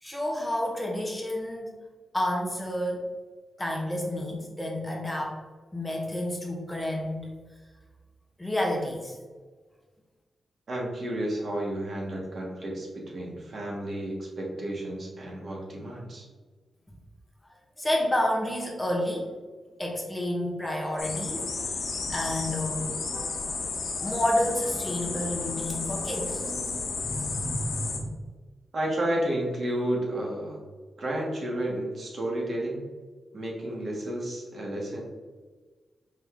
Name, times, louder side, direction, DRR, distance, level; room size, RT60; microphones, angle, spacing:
voice 1, 0.0-1.7 2.1-3.1 3.6-5.4 5.7-7.3 8.4-9.2 17.8-19.3 19.8-21.8 22.1-23.0 24.0-26.4 27.0-28.1, left 1 dB, 10° left, -1 dB, 0.7 m, -30 dB
voice 2, 10.7-16.3 28.7-30.6 31.0-32.8 33.3-35.0, right 1 dB, 50° right, -2 dB, 1.2 m, -31 dB
sound 1, 21.0-28.0, left 4 dB, 75° left, 0.8 m, -32 dB
4.7 x 2.6 x 3.5 m, 1.4 s
wide cardioid pair, 135°, 0 cm